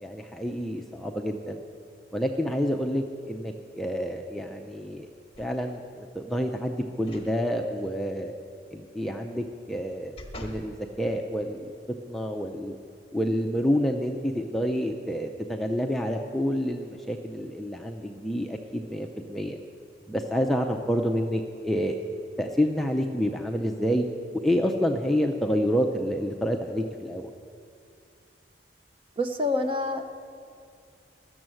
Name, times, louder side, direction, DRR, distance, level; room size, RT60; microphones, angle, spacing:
voice 1, 0.0-1.6 2.1-5.1 5.4-8.3 8.7-11.7 12.1-12.8 13.1-19.6 20.1-22.0 22.4-24.1 24.4-27.3, equal, ahead, 2 dB, 0.4 m, -28 dB
sound 1, 5.3-5.9 7.0-7.3 7.8-7.9 9.5-10.7 11.3-11.4, left 1 dB, 30° left, 1.2 m, -45 dB
voice 2, 29.2-30.1, left 2 dB, 30° right, 7 dB, 0.7 m, -27 dB
12.5 x 7.1 x 7.6 m, 2.4 s
head